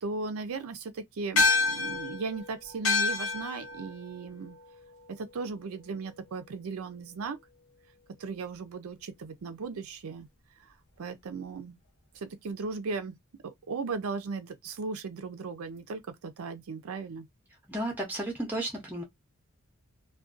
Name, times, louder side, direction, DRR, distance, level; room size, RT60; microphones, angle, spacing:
voice 1, 0.0-4.6 5.1-7.4 8.2-10.3 10.6-11.8 12.1-13.1 13.4-17.3, right 4 dB, 75° right, 0.4 m, -37 dB
sound 1, 1.4-6.0, left 3 dB, 60° left, 0.7 m, -30 dB
voice 2, 17.7-19.0, right 1 dB, 10° right, 0.6 m, -33 dB
2.5 x 2.2 x 2.4 m
head